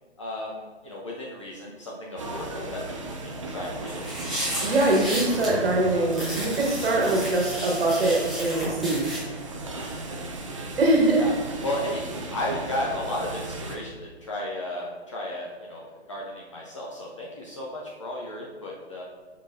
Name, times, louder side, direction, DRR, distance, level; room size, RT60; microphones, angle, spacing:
voice 1, 0.2-4.4 9.8-10.2 11.2-11.4 11.6-12.0 12.3-19.0, left 1 dB, 30° left, -3 dB, 0.5 m, -34 dB
sound 1, 2.2-13.8, right 2 dB, 30° right, 0.4 m, -36 dB
sound 2, 3.9-5.5 6.1-9.2, equal, ahead, 0.8 m, -33 dB
voice 2, 4.6-9.2 10.8-11.3, right 2 dB, 60° right, -1 dB, 1.4 m, -23 dB
5.1 x 4.0 x 2.6 m, 1.4 s
hypercardioid pair, 150°, 33 cm